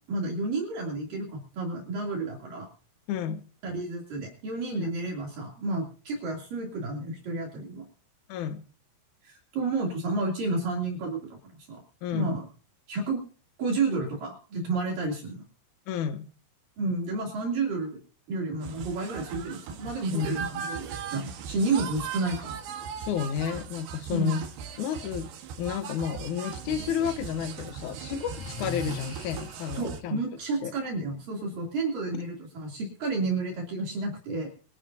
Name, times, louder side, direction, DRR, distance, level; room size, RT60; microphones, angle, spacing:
voice 1, 0.1-2.7 3.6-7.8 9.2-11.8 12.1-12.4 12.9-13.2 13.6-15.5 16.8-18.0 18.3-22.6 24.1-24.4 29.7-34.5, right 3 dB, 60° right, -1 dB, 4.4 m, -31 dB
voice 2, 3.1-3.4 4.8-4.9 8.3-8.6 12.0-12.4 15.9-16.3 20.1-20.4 23.0-24.4 24.8-25.3 25.6-30.2 30.6-30.7, left 8 dB, 65° left, 9 dB, 2.1 m, -31 dB
sound 1, 18.6-30.0, right 7 dB, 80° right, 3.4 m, -39 dB
Breathing, 26.3-27.5 28.3-29.9, left 2 dB, 10° left, 3.2 m, -40 dB
24.0 x 11.5 x 2.7 m, 0.40 s
omnidirectional pair, 4.7 m